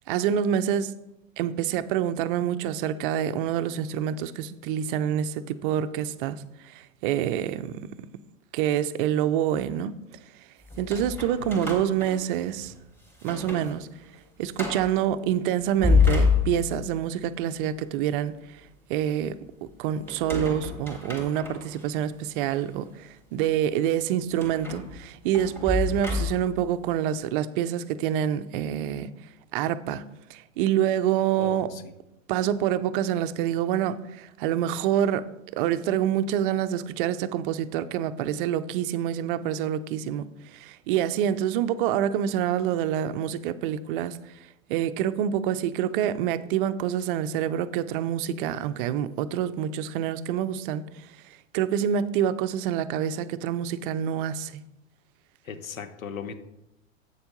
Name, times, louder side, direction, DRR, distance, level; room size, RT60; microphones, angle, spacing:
voice 1, 0.1-0.9 1.4-7.8 8.5-9.9 10.8-12.7 13.2-13.9 14.4-18.3 18.9-19.4 19.8-29.1 29.5-30.0 30.3-31.7 32.3-40.2 40.5-44.2 44.7-50.8 51.5-54.6, right 10 dB, 40° right, 0.5 m, -27 dB
sound 1, 10.7-12.7 13.1-13.7 14.0-14.1 14.5-15.0 15.6-16.9 20.1-21.8 22.5-22.6 24.4-26.6, left 4 dB, 5° left, 2.2 m, -27 dB
voice 2, 55.5-56.3, left 7 dB, 80° left, 0.9 m, -37 dB
8.3 x 6.9 x 3.8 m
hypercardioid pair, 100°, 40 cm